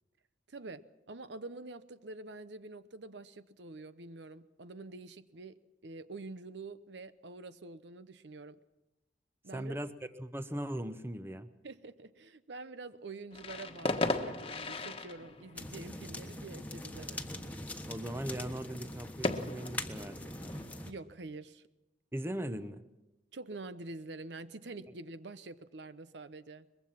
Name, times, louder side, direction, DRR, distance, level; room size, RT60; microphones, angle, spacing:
voice 1, 0.5-8.6 9.4-9.8 11.6-17.2 20.8-21.6 23.3-26.7, right 3 dB, 75° right, 13 dB, 0.8 m, -46 dB
voice 2, 9.5-9.9 10.2-11.5 17.9-20.5 22.1-22.8, right 1 dB, 15° right, 11 dB, 0.8 m, -39 dB
sound 1, 13.3-20.9, left 2 dB, 30° left, 1.3 m, -38 dB
sound 2, 15.6-20.9, left 1 dB, 10° left, 1.3 m, -42 dB
23.0 x 21.5 x 5.9 m, 1.0 s
head